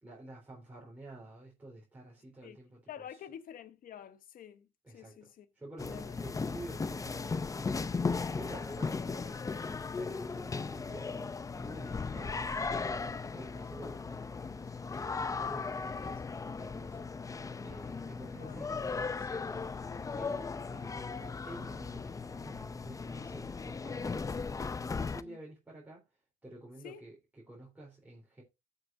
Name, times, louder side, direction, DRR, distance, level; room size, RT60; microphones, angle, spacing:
voice 1, 0.0-3.2 4.8-5.2 5.5-8.1 8.3-9.4 10.0-13.0 13.3-16.2 16.6-17.1 17.6-19.7 20.1-24.4 24.8-28.4, right 2 dB, 10° right, 3.7 m, -50 dB
voice 2, 2.9-4.7 4.9-5.5 5.9-6.2 12.0-12.3 18.4-18.7 25.2-25.4 26.8-27.0, left 9 dB, 55° left, 1.1 m, -48 dB
sound 1, 5.8-25.2, left 4 dB, 20° left, 0.6 m, -37 dB
14.0 x 6.9 x 2.6 m
cardioid pair, 110°, 17 cm